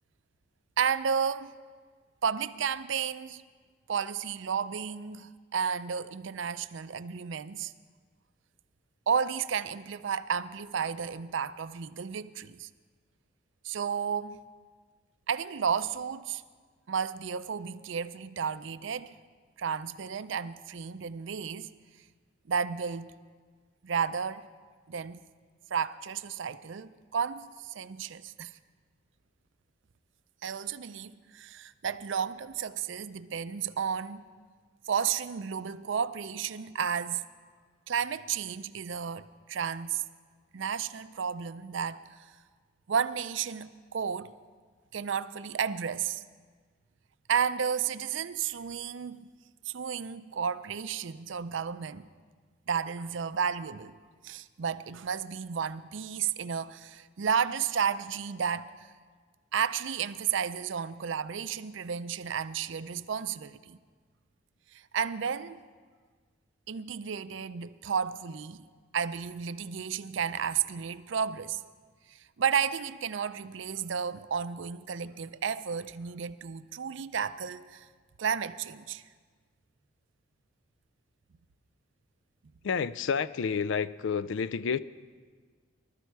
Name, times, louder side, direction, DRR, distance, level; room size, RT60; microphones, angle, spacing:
voice 1, 0.8-1.5 2.2-3.4 3.9-7.7 9.1-12.7 13.6-14.4 15.3-16.4 16.9-19.1 19.6-21.7 22.5-23.1 23.8-24.5 24.9-25.2 25.7-28.5 30.4-34.2 34.9-37.2 37.9-40.0 40.5-42.0 42.9-44.3 44.9-46.2 47.3-49.3 49.7-52.1 52.7-53.9 54.2-58.9 59.5-63.8 64.7-65.6 66.7-68.7 68.9-71.6 72.1-77.9 78.2-79.0, right 7 dB, 70° right, 0.5 m, -32 dB
voice 2, 82.6-84.8, left 6 dB, 70° left, 0.4 m, -29 dB
19.5 x 13.0 x 4.7 m
head